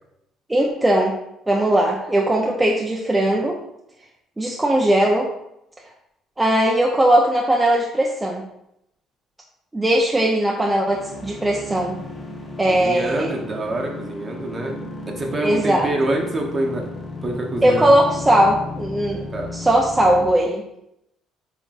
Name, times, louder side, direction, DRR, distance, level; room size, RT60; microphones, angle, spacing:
voice 1, 0.5-1.2 1.5-3.6 4.4-5.3 6.4-8.5 9.7-12.0 12.6-13.3 15.4-15.9 17.6-20.6, right 1 dB, 15° right, -1 dB, 0.4 m, -19 dB
sound 1, 10.9-20.2, left 2 dB, 20° left, 0.7 m, -34 dB
voice 2, 12.7-14.8 15.1-16.9 17.2-17.9 19.3-19.5, right 1 dB, 35° right, 0 dB, 0.8 m, -26 dB
4.0 x 3.4 x 2.3 m, 0.82 s
cardioid pair, 100°, 0 cm